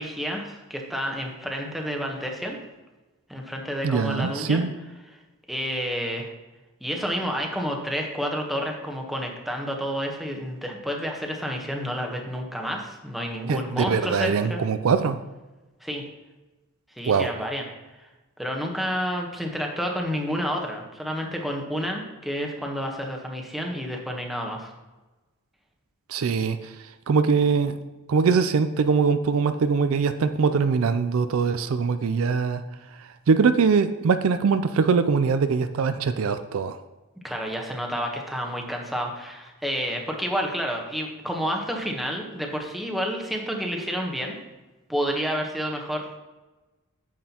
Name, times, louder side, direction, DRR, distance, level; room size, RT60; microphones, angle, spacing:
voice 1, 0.0-2.6 3.3-4.6 5.1-5.2 5.5-6.3 6.8-14.6 15.8-16.0 17.0-17.6 18.0-18.1 18.4-24.7 37.2-44.4 44.9-46.2, equal, ahead, 0 dB, 1.0 m, -30 dB
voice 2, 3.8-4.7 13.5-15.2 17.1-17.3 26.1-26.7 27.1-27.8 28.1-32.6 33.3-36.8, right 5 dB, 65° right, 10 dB, 0.4 m, -22 dB
9.2 x 7.5 x 2.9 m, 1.1 s
head